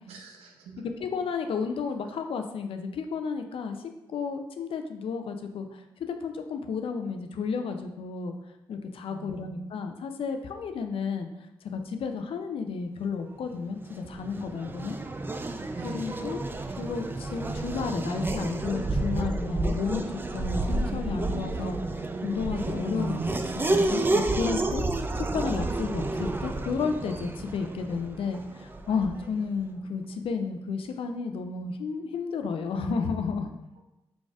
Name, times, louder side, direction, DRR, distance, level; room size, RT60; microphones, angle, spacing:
voice 1, 0.1-0.8 9.1-9.7 15.7-16.2, right 4 dB, 90° right, 1 dB, 0.6 m, -46 dB
voice 2, 1.0-3.8 4.1-8.3 8.7-11.3 11.7-15.0 15.8-16.4 16.8-20.0 20.3-21.8 22.2-24.9 25.2-33.5, left 5 dB, 65° left, 6 dB, 0.4 m, -32 dB
Race car auto racing / Accelerating revving vroom, 13.8-29.4, right 2 dB, 20° right, 0.4 m, -30 dB
4.7 x 4.0 x 2.4 m, 0.92 s
supercardioid pair, 50°, 10 cm